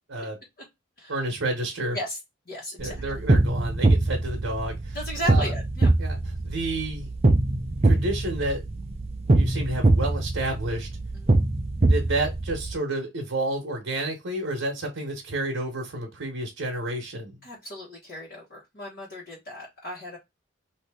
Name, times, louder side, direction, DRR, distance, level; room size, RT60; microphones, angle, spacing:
voice 1, 1.1-2.0 2.8-5.0 5.2-5.5 6.0-7.1 7.8-8.6 9.3-10.9 11.9-17.4, right 2 dB, 80° right, 0.8 m, -30 dB
voice 2, 2.5-2.9 4.9-5.9 11.1-11.3 17.4-20.2, equal, 50° left, 1.2 m, -36 dB
sound 1, 2.8-12.7, right 2 dB, 30° right, 0.4 m, -23 dB
2.8 x 2.6 x 3.4 m
head